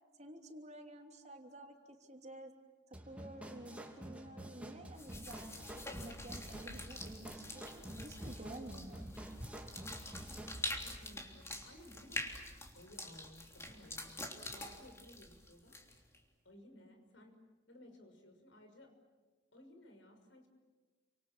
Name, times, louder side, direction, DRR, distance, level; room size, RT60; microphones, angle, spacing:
voice 1, 0.2-2.5 2.9-5.6 5.9-9.2, right 1 dB, 40° right, 4 dB, 3.1 m, -51 dB
sound 1, 2.9-10.6, right 1 dB, 5° right, 2.9 m, -50 dB
sound 2, 5.0-16.2, left 1 dB, 15° left, 3.3 m, -46 dB
voice 2, 10.8-12.4 12.7-15.8 16.4-17.4 17.7-19.0 19.5-20.5, left 1 dB, 85° left, 6 dB, 6.0 m, -58 dB
29.5 x 26.0 x 7.5 m, 1.3 s
head